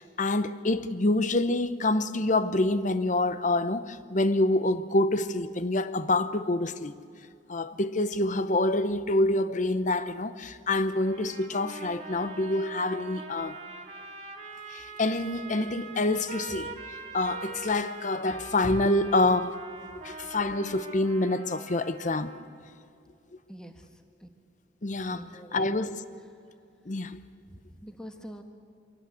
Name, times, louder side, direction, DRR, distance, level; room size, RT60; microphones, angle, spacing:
voice 1, 0.0-6.9 7.5-13.6 14.7-16.8 17.1-19.6 20.0-22.3 24.8-25.3 25.5-26.0 26.9-27.2, left 2 dB, 40° left, 0.8 m, -27 dB
sound 1, 10.9-22.6, right 3 dB, 35° right, 2.2 m, -43 dB
voice 2, 23.5-24.3 25.1-25.9 27.5-28.4, equal, 5° left, 1.3 m, -45 dB
25.0 x 17.5 x 8.3 m
head